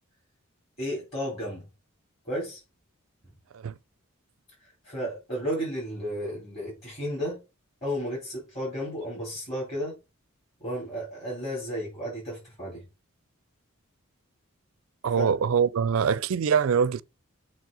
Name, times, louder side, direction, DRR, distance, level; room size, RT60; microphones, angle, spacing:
voice 1, 0.8-1.6 2.2-2.6 4.6-7.4 7.8-10.0 10.6-12.8 15.1-15.3, equal, 30° left, 3.7 m, -33 dB
voice 2, 15.0-17.0, right 6 dB, 75° right, 0.4 m, -24 dB
7.4 x 3.2 x 5.3 m
head